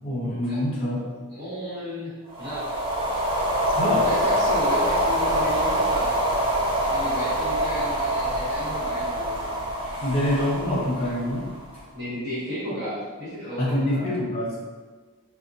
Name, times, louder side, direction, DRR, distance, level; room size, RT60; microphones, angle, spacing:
voice 1, 0.0-1.1 3.7-4.1 9.8-11.5 13.6-14.6, left 1 dB, 25° left, -5 dB, 0.9 m, -25 dB
voice 2, 1.3-2.7 4.0-6.1 6.8-9.4 11.9-14.1, equal, 50° right, -10 dB, 1.2 m, -33 dB
sound 1, 2.3-11.8, right 1 dB, 25° right, 0.5 m, -25 dB
4.2 x 2.3 x 2.6 m, 1.4 s
head